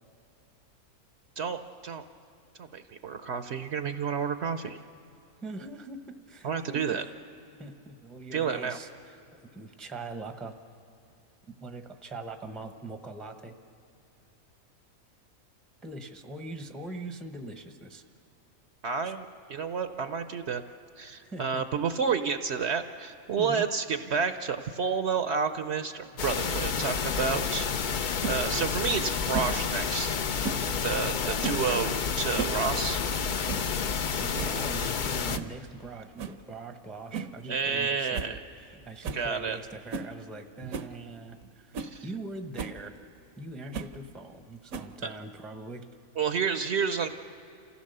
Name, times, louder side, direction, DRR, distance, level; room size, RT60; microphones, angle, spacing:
voice 1, 1.4-2.0 2.6-4.8 6.4-7.0 8.3-8.8 18.8-20.6 21.0-28.0 28.2-30.2 30.8-33.0 37.5-38.4 39.1-39.6 40.6-40.7 41.8-42.0 45.0-45.1 46.2-47.1, right 6 dB, 60° right, 9 dB, 0.9 m, -30 dB
voice 2, 5.4-7.0 7.6-9.2 9.4-10.6 11.5-13.5 15.8-18.0 19.0-19.1 21.2-21.6 23.4-23.7 27.3-27.4 31.1-31.8 34.2-41.8 42.0-42.9 43.4-45.9, right 2 dB, ahead, 7 dB, 0.7 m, -42 dB
sound 1, 26.2-35.4, left 6 dB, 50° left, 0.6 m, -30 dB
sound 2, 28.2-28.4 29.3-29.6 30.4-30.7 31.4-31.7 32.2-32.6 32.9-33.0 33.5-33.7 34.1-34.2 34.4-34.6 35.3-35.5 36.2-36.4 37.1-37.4 37.7-37.8 38.1-38.3 38.6-38.7 39.0-39.3 39.9-40.1 40.7-40.9 41.4-41.5 41.7-41.9 42.6-42.8 43.7-44.0 44.7-45.1, right 5 dB, 75° right, 1.2 m, -35 dB
28.0 x 15.5 x 6.7 m, 2.8 s
omnidirectional pair, 1.5 m